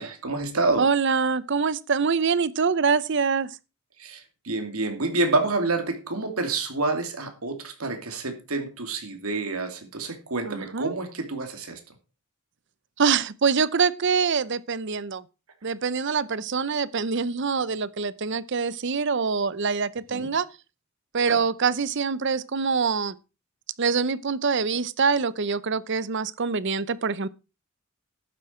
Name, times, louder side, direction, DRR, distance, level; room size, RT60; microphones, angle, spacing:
voice 1, 0.0-0.9 4.0-11.8 20.1-20.3 21.3-21.4, right 3 dB, 90° right, 2.7 m, -28 dB
voice 2, 0.8-3.5 10.5-10.9 13.0-15.2 15.6-20.5 21.1-23.1 23.8-27.3, right 5 dB, 55° right, 0.7 m, -25 dB
11.5 x 9.5 x 4.5 m
head